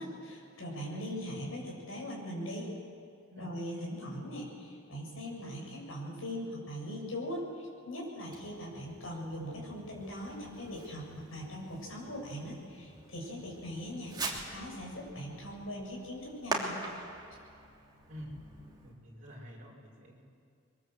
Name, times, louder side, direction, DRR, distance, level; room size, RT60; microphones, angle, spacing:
voice 1, 0.0-2.7 3.4-11.1 11.3-16.7, equal, 75° left, -1 dB, 7.6 m, -40 dB
Fireworks, 8.3-19.0, right 2 dB, 20° right, 3.0 m, -43 dB
voice 2, 18.8-20.2, equal, 40° right, -3 dB, 5.6 m, -48 dB
24.5 x 23.0 x 7.9 m, 2.3 s
head